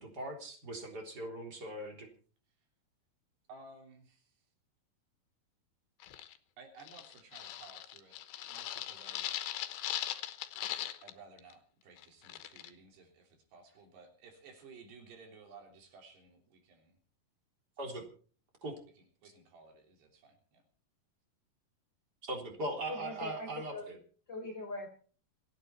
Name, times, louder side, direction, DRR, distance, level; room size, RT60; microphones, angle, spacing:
voice 1, 0.0-2.1 17.8-18.1 18.6-18.8 22.2-24.0, right 1 dB, 25° right, 2 dB, 3.9 m, -40 dB
voice 2, 3.5-4.4 6.6-8.2 8.5-9.3 11.0-17.0 19.0-20.6, right 4 dB, 80° right, 3 dB, 5.4 m, -56 dB
sound 1, 6.0-6.4 6.8-11.1 11.4-11.5 12.0-12.7, left 13 dB, 90° left, 3.3 m, -39 dB
voice 3, 22.9-23.9 24.3-24.9, left 2 dB, 25° left, 2 dB, 4.6 m, -41 dB
28.0 x 9.8 x 4.3 m, 0.43 s
omnidirectional pair, 4.7 m